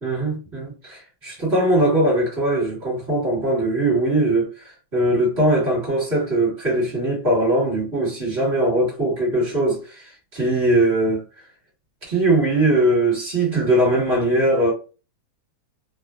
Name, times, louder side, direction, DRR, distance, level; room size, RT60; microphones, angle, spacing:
voice 1, 0.0-11.2 12.1-14.7, right 1 dB, 35° right, 1.6 m, -20 dB
3.3 x 2.2 x 2.3 m
omnidirectional pair, 2.2 m